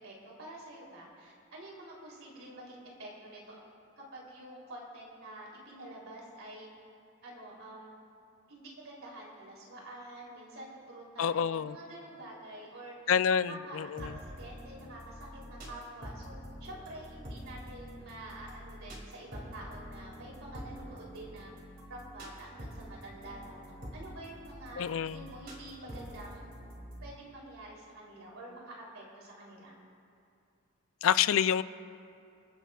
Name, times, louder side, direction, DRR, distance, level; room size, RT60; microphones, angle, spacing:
voice 1, 0.0-3.6 4.0-6.7 7.2-7.9 8.5-12.9 13.5-21.5 21.9-23.6 23.9-26.4 27.0-29.7, right 1 dB, 90° right, -3 dB, 3.2 m, -48 dB
voice 2, 11.2-11.8 13.1-14.2 24.8-25.3 31.0-31.6, left 8 dB, 75° left, 15 dB, 0.4 m, -28 dB
sound 1, 14.0-27.1, equal, 45° right, 2.6 m, -46 dB
29.5 x 10.0 x 2.4 m, 2.5 s
head